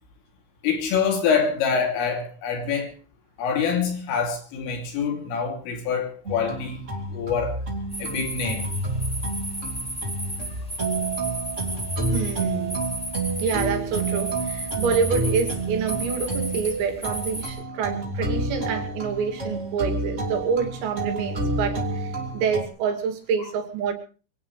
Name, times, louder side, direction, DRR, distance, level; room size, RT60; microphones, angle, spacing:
voice 1, 0.6-2.9 3.4-7.6 8.0-8.7, left 6 dB, 80° left, 3 dB, 5.3 m, -25 dB
sound 1, 6.2-22.6, right 2 dB, 25° right, 1.7 m, -29 dB
sound 2, 7.9-17.5, right 1 dB, ahead, 5.0 m, -34 dB
voice 2, 12.1-12.9 13.4-23.9, right 6 dB, 90° right, 4 dB, 5.2 m, -27 dB
24.0 x 17.5 x 3.3 m, 0.38 s
omnidirectional pair, 5.8 m